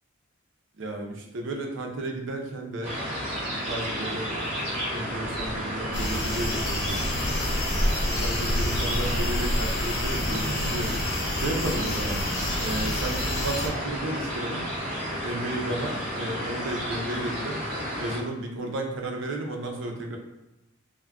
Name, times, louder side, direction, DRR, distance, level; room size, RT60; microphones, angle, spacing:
voice 1, 0.8-3.0 3.7-4.4 4.9-7.3 7.9-11.0 11.3-12.2 12.6-14.7 15.2-17.6 18.0-20.2, right 1 dB, 60° right, 2 dB, 0.5 m, -33 dB
sound 1, 2.8-18.2, equal, 30° right, 0.9 m, -32 dB
sound 2, 5.9-13.7, left 1 dB, 60° left, 0.6 m, -29 dB
2.3 x 2.1 x 3.3 m, 0.97 s
head